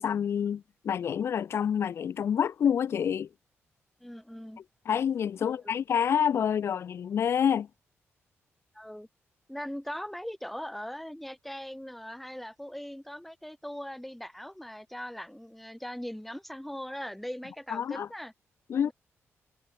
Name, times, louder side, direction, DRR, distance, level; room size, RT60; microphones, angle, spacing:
voice 1, 0.0-3.3 4.8-7.7 17.7-18.1 18.7-18.9, left 8 dB, 60° left, 1.4 m, -27 dB
voice 2, 4.0-4.6 5.5-5.7 8.7-9.1 9.5-18.3 18.8-18.9, equal, 5° left, 4.3 m, -40 dB
wide cardioid pair, 150°, 5 cm